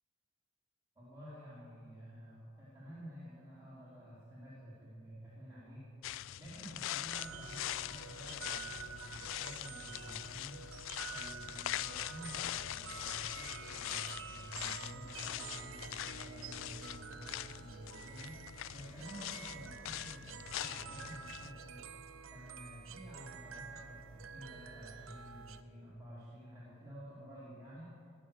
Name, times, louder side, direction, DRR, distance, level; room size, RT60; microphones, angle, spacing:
voice 1, 1.0-10.7 11.1-21.8 22.3-28.1, equal, 20° right, -10 dB, 3.9 m, -51 dB
sound 1, 6.0-21.5, left 14 dB, 65° left, 0.3 m, -43 dB
sound 2, 7.1-25.6, right 6 dB, 80° right, 0.8 m, -49 dB
18.0 x 10.5 x 7.1 m, 2.6 s
head